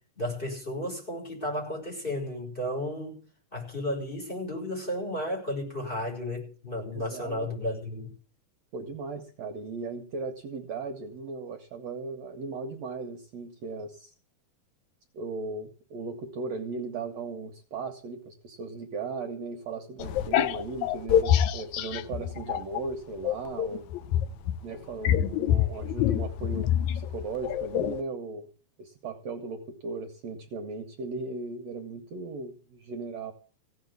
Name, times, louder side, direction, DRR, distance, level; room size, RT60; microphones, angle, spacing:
voice 1, 0.2-3.2 3.5-8.1, left 1 dB, 15° left, 5.6 m, -33 dB
voice 2, 6.9-7.5 8.7-14.1 15.1-23.9 24.6-28.5 28.8-33.3, right 4 dB, 65° right, 2.3 m, -37 dB
sound 1, 20.0-22.9 23.2-28.0, left 10 dB, 75° left, 2.0 m, -26 dB
16.5 x 6.5 x 9.4 m
omnidirectional pair, 3.6 m